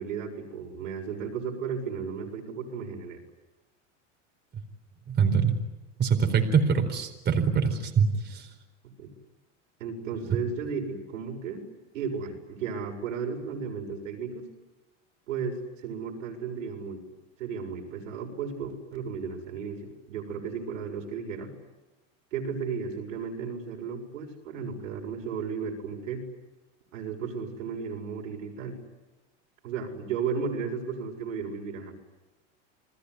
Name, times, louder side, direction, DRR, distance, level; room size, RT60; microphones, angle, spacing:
voice 1, 0.0-3.2 9.0-9.1 9.8-11.6 11.9-14.5 15.3-17.0 17.4-21.5 22.3-26.3 26.9-28.8 29.6-32.0, right 6 dB, 90° right, 3 dB, 7.2 m, -34 dB
voice 2, 5.1-5.5 6.0-8.5, right 6 dB, 25° right, 4 dB, 4.3 m, -24 dB
29.5 x 20.0 x 9.9 m, 1.0 s
supercardioid pair, 125°, 38 cm